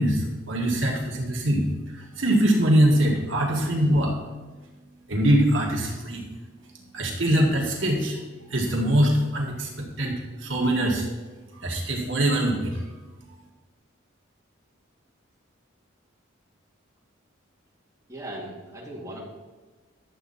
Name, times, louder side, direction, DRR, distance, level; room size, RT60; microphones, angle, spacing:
voice 1, 0.0-1.7 2.2-4.1 5.1-6.2 6.9-8.2 8.5-9.7 10.0-11.1 11.6-12.8, right 1 dB, 70° right, -1 dB, 1.8 m, -22 dB
voice 2, 3.5-3.8 18.1-19.2, right 1 dB, 15° right, -5 dB, 2.2 m, -39 dB
11.0 x 7.5 x 4.2 m, 1.3 s
head